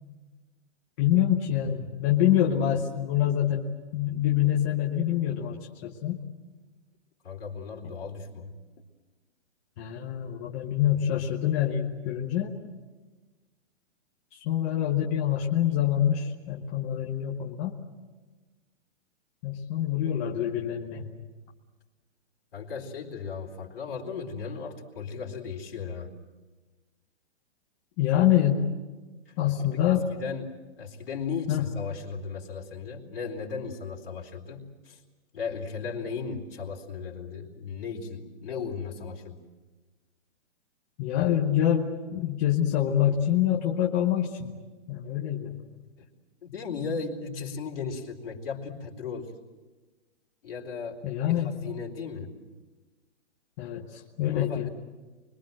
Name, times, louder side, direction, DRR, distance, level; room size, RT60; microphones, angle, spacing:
voice 1, 1.0-6.2 9.8-12.5 14.4-17.7 19.4-21.1 28.0-28.7 29.4-30.0 31.5-31.7 41.0-44.5 44.9-45.6 51.0-51.6 53.6-54.7, left 11 dB, 15° left, -2 dB, 0.8 m, -26 dB
voice 2, 7.2-8.6 22.5-26.1 29.3-35.0 35.3-39.4 46.0-46.1 46.4-49.3 50.4-52.3 54.3-54.7, left 5 dB, 50° left, 0 dB, 4.2 m, -36 dB
29.5 x 22.5 x 7.7 m, 1.3 s
hypercardioid pair, 175°, 35 cm